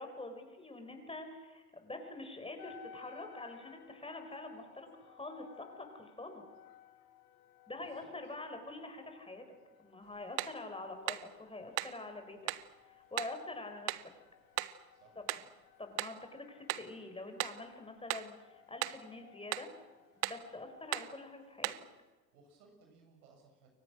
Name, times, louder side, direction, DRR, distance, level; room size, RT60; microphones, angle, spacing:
voice 1, 0.0-5.7 5.9-6.4 7.7-9.4 9.8-12.4 12.8-13.9 15.2-15.3 15.8-19.7 20.2-21.7, left 2 dB, 10° left, 5 dB, 5.4 m, -46 dB
sound 1, 2.6-21.5, left 8 dB, 50° left, 2.9 m, -60 dB
voice 2, 7.8-8.1 14.9-15.2 22.3-23.7, right 4 dB, 70° right, 3 dB, 7.0 m, -63 dB
sound 2, 10.4-10.6 11.1-11.3 11.8-12.0 12.5-12.7 13.2-13.4 13.9-14.1 14.6-14.8 15.3-15.5 16.0-16.2 16.7-16.9 17.4-17.6 18.1-18.3 18.8-19.0 19.5-19.7 20.2-20.5 20.9-21.1 21.6-21.9, right 19 dB, 55° right, 1.1 m, -37 dB
29.5 x 23.0 x 6.4 m, 1.2 s
hypercardioid pair, 75°, 46 cm